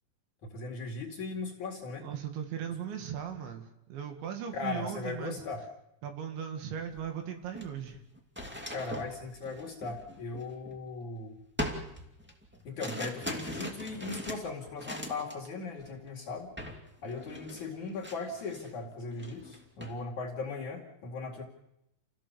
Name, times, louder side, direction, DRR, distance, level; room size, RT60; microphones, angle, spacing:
voice 1, 0.4-2.1 4.5-5.6 8.7-11.4 12.6-16.5 17.0-21.4, left 3 dB, 50° left, -1 dB, 3.2 m, -38 dB
voice 2, 2.0-5.4 6.0-8.0, right 8 dB, 70° right, 5 dB, 4.3 m, -38 dB
sound 1, 6.9-7.1 7.4-11.0 11.6-15.5 15.8-16.1 16.6-16.8 17.1-18.7 19.1-20.0, left 1 dB, 10° right, 0.5 m, -41 dB
29.0 x 16.5 x 7.0 m, 0.86 s
omnidirectional pair, 5.5 m